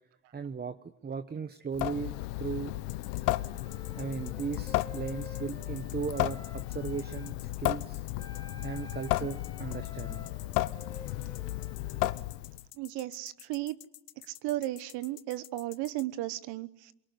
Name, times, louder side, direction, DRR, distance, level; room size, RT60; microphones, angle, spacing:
voice 1, 0.3-0.8 1.0-2.7 4.0-8.1 8.6-10.3, right 6 dB, 25° right, 10 dB, 1.0 m, -37 dB
Water tap faucet / Sink (filling or washing) / Drip, 1.7-12.7, left 18 dB, 90° left, 0.9 m, -34 dB
sound 1, 2.9-16.0, left 15 dB, 70° left, 1.6 m, -50 dB
Wind instrument woodwind instrument, 3.1-7.4 8.2-12.1, left 3 dB, 10° left, 5.2 m, -50 dB
voice 2, 12.8-13.8 14.3-16.9, right 16 dB, 75° right, 15 dB, 1.2 m, -35 dB
24.0 x 23.0 x 9.7 m, 0.88 s
cardioid pair, 105°, 42 cm